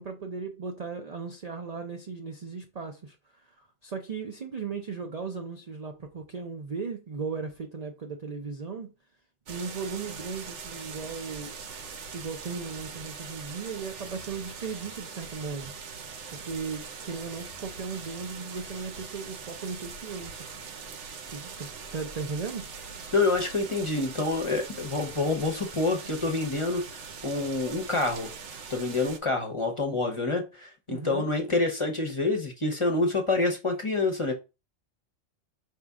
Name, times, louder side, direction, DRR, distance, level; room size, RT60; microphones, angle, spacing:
voice 1, 0.0-3.5 3.8-8.9 9.5-11.5 12.1-15.7 16.3-20.5 21.3-22.7 30.9-31.3, right 5 dB, 50° right, 0.4 m, -37 dB
sound 1, 9.5-29.2, right 5 dB, 70° right, 1.0 m, -42 dB
voice 2, 23.1-28.3 28.7-34.3, left 3 dB, 30° left, 0.7 m, -27 dB
4.9 x 2.7 x 3.5 m
omnidirectional pair, 1.3 m